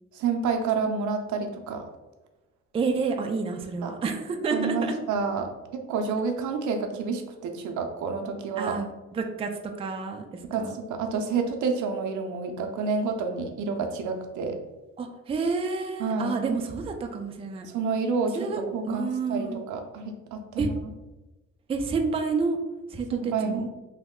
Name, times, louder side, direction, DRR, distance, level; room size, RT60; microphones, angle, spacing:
voice 1, 0.1-1.8 3.8-3.9 4.5-8.7 10.4-14.6 16.0-16.4 17.7-20.9 23.2-23.7, right 4 dB, 75° right, 5 dB, 0.5 m, -29 dB
voice 2, 2.7-4.9 8.6-10.8 15.0-17.7 18.3-19.6 20.6-20.7 21.7-22.6 22.9-23.6, right 4 dB, 20° right, 4 dB, 0.3 m, -29 dB
3.1 x 2.1 x 3.6 m, 1.1 s
cardioid pair, 90°, 30 cm